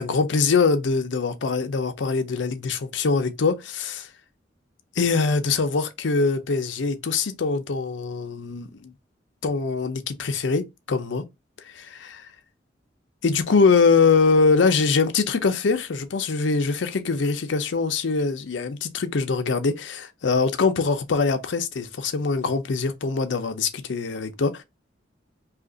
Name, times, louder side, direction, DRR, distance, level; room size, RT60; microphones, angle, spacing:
voice 1, 0.0-4.1 5.0-8.9 9.4-11.2 11.7-12.3 13.2-24.6, left 4 dB, 85° left, 0.5 m, -23 dB
2.8 x 2.5 x 3.8 m
head